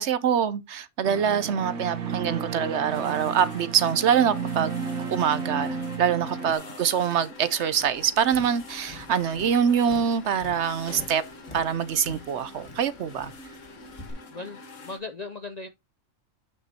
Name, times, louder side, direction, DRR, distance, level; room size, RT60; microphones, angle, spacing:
voice 1, 0.0-4.7 5.1-11.2 11.5-13.3, right 8 dB, 65° right, 0.8 m, -24 dB
sound 1, 1.0-6.5, right 5 dB, 80° right, 1.6 m, -33 dB
sound 2, 2.9-15.0, left 3 dB, 65° left, 1.7 m, -45 dB
voice 2, 6.5-6.9 14.3-15.7, left 3 dB, 50° left, 0.5 m, -38 dB
Tap, 7.7-14.1, left 2 dB, 30° left, 2.3 m, -46 dB
8.8 x 6.1 x 2.8 m
omnidirectional pair, 1.4 m